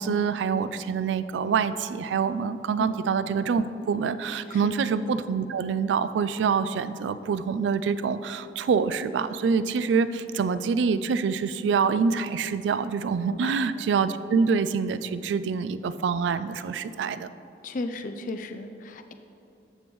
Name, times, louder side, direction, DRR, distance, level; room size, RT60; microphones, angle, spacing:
voice 1, 0.0-17.3, right 5 dB, 85° right, 14 dB, 0.3 m, -26 dB
voice 2, 13.2-13.6 17.6-19.1, left 2 dB, 45° left, 7 dB, 0.4 m, -35 dB
14.5 x 5.3 x 3.1 m, 2.7 s
head